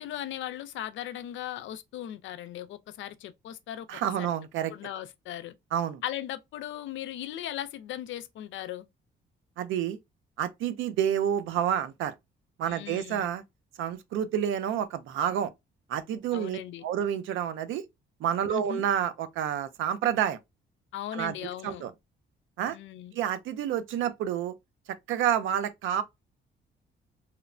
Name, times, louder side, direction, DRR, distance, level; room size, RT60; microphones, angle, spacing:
voice 1, 0.0-3.9 4.2-4.3 4.7-5.5 6.0-8.9 12.7-13.3 16.3-16.8 18.5-18.8 20.9-21.8 22.7-23.1, left 11 dB, 75° left, 0.4 m, -38 dB
voice 2, 3.9-4.7 5.7-6.0 9.6-10.0 10.4-12.1 12.6-13.4 13.8-15.5 15.9-17.8 18.2-20.4 21.1-21.4 21.6-21.9 22.6-22.8 23.1-24.5 25.1-26.0, right 9 dB, 80° right, 0.4 m, -29 dB
3.0 x 2.1 x 2.4 m
cardioid pair, 90°, 20 cm